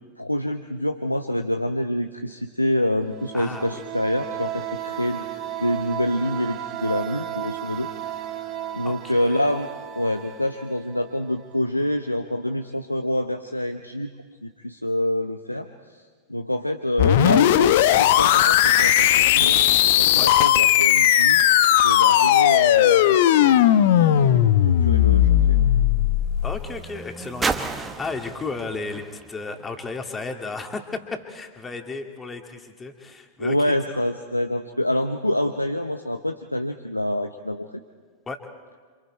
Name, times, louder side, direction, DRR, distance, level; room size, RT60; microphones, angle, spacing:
voice 1, 0.2-5.2 5.6-7.9 8.7-9.7 9.9-14.1 14.4-16.0 16.3-19.6 20.0-21.4 21.8-25.6 33.4-37.7, left 1 dB, 85° left, 7 dB, 0.8 m, -26 dB
sound 1, 3.0-11.6, right 11 dB, 35° right, 2.0 m, -34 dB
voice 2, 3.3-3.8 8.8-9.4 20.1-20.3 26.4-34.0 38.3-38.4, left 3 dB, 15° left, 4 dB, 2.3 m, -34 dB
sound 2, 17.0-26.7, left 12 dB, 50° left, 0.9 m, -17 dB
sound 3, 25.5-30.4 31.2-31.3, right 4 dB, 15° right, 1.3 m, -35 dB
28.5 x 26.5 x 4.5 m, 1.6 s
figure-of-eight pair, 90°, 0 cm